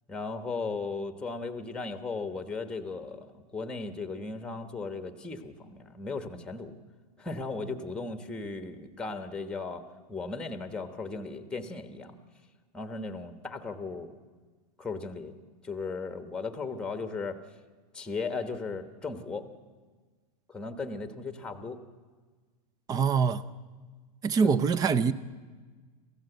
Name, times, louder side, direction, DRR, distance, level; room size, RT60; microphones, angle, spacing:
voice 1, 0.1-6.7 7.2-9.8 10.1-12.2 12.7-14.1 14.8-15.3 15.6-17.4 17.9-19.5 20.5-21.8 24.4-24.5, left 4 dB, 5° left, 1.3 m, -36 dB
voice 2, 22.9-23.4 24.2-25.1, right 6 dB, 20° right, 0.7 m, -24 dB
27.0 x 15.5 x 8.0 m
supercardioid pair, 150°, 20 cm